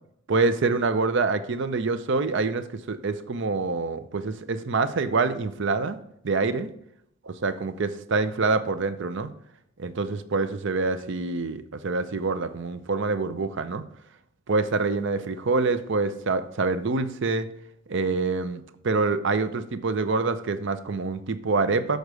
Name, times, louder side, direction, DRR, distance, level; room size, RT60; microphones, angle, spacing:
voice 1, 0.3-6.0 6.2-6.7 7.3-9.3 9.8-13.8 14.5-17.5 17.9-22.0, right 3 dB, 60° right, 12 dB, 0.6 m, -26 dB
6.6 x 6.5 x 4.7 m, 0.73 s
head